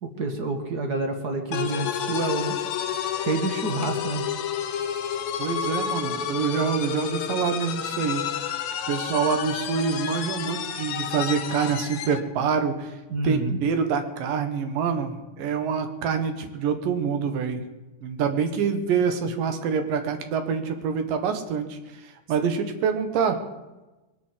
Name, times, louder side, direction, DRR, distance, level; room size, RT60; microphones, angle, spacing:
voice 1, 0.0-2.5 3.2-4.2 13.1-13.6, right 3 dB, 55° right, 4 dB, 1.1 m, -28 dB
sound 1, 1.5-12.3, left 8 dB, 75° left, 1.3 m, -30 dB
voice 2, 5.4-8.2 8.9-13.0 13.2-17.6 18.0-23.4, right 6 dB, 90° right, 7 dB, 3.1 m, -26 dB
21.5 x 8.6 x 7.5 m, 1.1 s
omnidirectional pair, 3.8 m